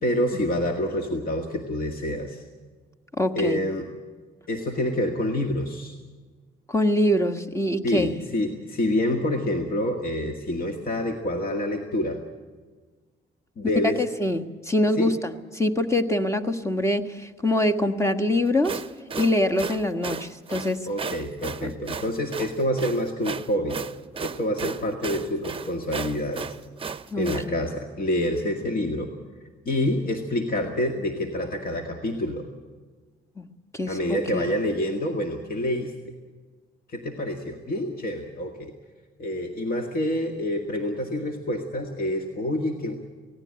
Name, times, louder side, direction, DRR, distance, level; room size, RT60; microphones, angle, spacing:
voice 1, 0.0-2.4 3.3-3.9 4.5-6.0 7.8-12.2 13.6-14.0 15.0-15.1 20.9-23.8 24.2-26.6 27.2-29.1 29.7-32.5 33.9-35.9 36.9-38.7 39.2-43.0, left 1 dB, 45° left, 4 dB, 2.0 m, -27 dB
voice 2, 3.2-3.6 6.7-8.3 14.0-18.8 19.1-20.9 21.6-21.7 27.1-27.6 33.4-33.5 33.7-34.5, left 1 dB, 15° left, 6 dB, 1.5 m, -24 dB
sound 1, 18.5-27.5, right 5 dB, 25° right, 0.8 m, -34 dB
18.5 x 16.5 x 9.9 m, 1.4 s
cardioid pair, 90°, 20 cm